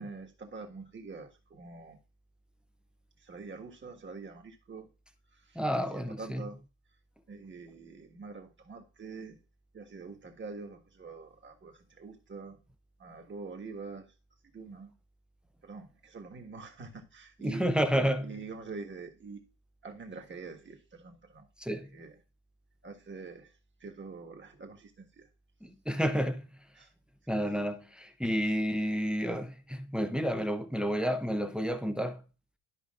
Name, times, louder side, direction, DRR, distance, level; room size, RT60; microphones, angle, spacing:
voice 1, 0.0-2.0 3.2-4.9 5.3-6.6 7.3-9.4 9.7-12.6 13.0-14.1 14.5-14.9 15.6-17.7 18.2-19.4 19.8-21.5 21.8-22.2 22.8-23.5 23.8-25.3 26.7-26.9 27.3-27.6, right 4 dB, 25° right, 1.5 m, -45 dB
voice 2, 5.6-6.5 17.4-18.2 21.6-21.9 25.6-26.5 27.3-32.2, equal, ahead, 0.6 m, -30 dB
12.5 x 5.2 x 2.4 m
cardioid pair, 130°, 42 cm